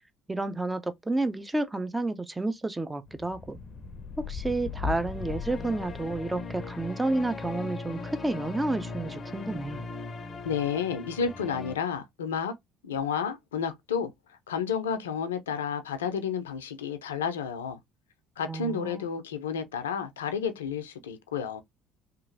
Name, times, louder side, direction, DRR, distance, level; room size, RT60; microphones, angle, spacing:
voice 1, 0.3-3.6 4.3-9.8 18.5-19.1, right 2 dB, 15° right, 0.5 m, -30 dB
sound 1, 3.1-11.8, left 4 dB, 40° left, 0.5 m, -38 dB
voice 2, 10.4-12.5 12.8-17.8 18.4-21.6, left 6 dB, 90° left, 0.4 m, -31 dB
2.9 x 2.4 x 2.6 m
hypercardioid pair, 60°, 0 cm